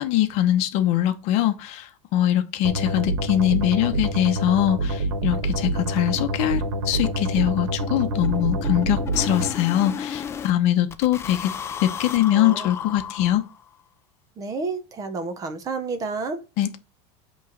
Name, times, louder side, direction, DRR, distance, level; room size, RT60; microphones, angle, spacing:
voice 1, 0.0-11.5 11.8-13.4 16.6-16.8, left 12 dB, 45° left, 0.8 m, -22 dB
sound 1, 2.6-9.5, right 1 dB, 85° right, 1.5 m, -26 dB
sound 2, 4.1-4.2 4.5-4.6 4.9-5.1 5.3-10.5 10.9-13.7, left 7 dB, 15° left, 0.4 m, -35 dB
voice 2, 12.1-12.7 14.4-16.4, right 4 dB, 20° right, 0.7 m, -30 dB
8.3 x 3.1 x 6.3 m
supercardioid pair, 165°, 16 cm